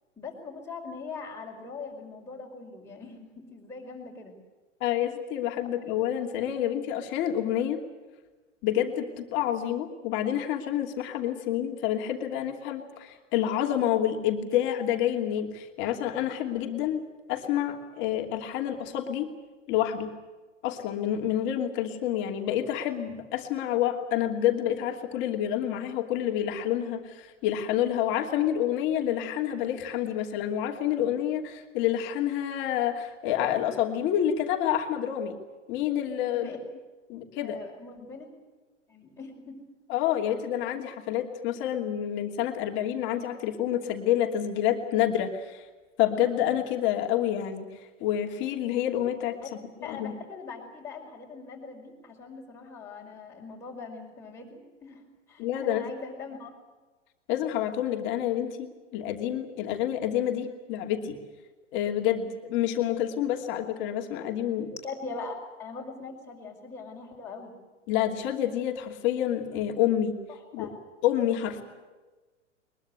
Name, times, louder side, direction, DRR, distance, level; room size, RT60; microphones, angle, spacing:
voice 1, 0.2-4.3 36.3-36.6 37.4-38.3 38.9-39.6 49.4-49.5 49.8-55.0 55.3-56.5 64.7-67.5 70.3-70.7 71.5-71.6, left 4 dB, 5° left, -4 dB, 5.2 m, -41 dB
voice 2, 4.8-7.8 8.6-17.0 17.3-19.3 19.7-20.1 20.6-35.3 35.7-36.5 37.1-37.6 39.9-45.7 46.0-47.7 48.0-49.3 49.8-50.1 55.4-55.9 57.3-58.7 58.9-61.2 61.7-64.7 67.9-70.2 70.5-70.7 71.0-71.6, left 11 dB, 30° left, 4 dB, 2.8 m, -28 dB
23.0 x 22.0 x 8.0 m, 1.2 s
figure-of-eight pair, 105°, 37 cm